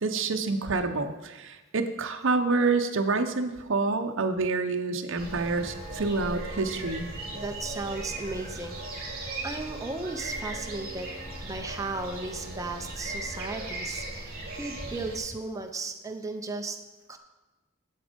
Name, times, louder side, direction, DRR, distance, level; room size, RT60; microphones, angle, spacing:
voice 1, 0.0-7.1, right 3 dB, 65° right, 7 dB, 0.8 m, -27 dB
sound 1, 5.2-15.2, right 2 dB, 45° right, 2.6 m, -37 dB
voice 2, 7.3-9.1 9.4-16.8 17.1-17.2, right 3 dB, 15° right, 4 dB, 0.7 m, -36 dB
8.9 x 7.3 x 5.2 m, 1.1 s
head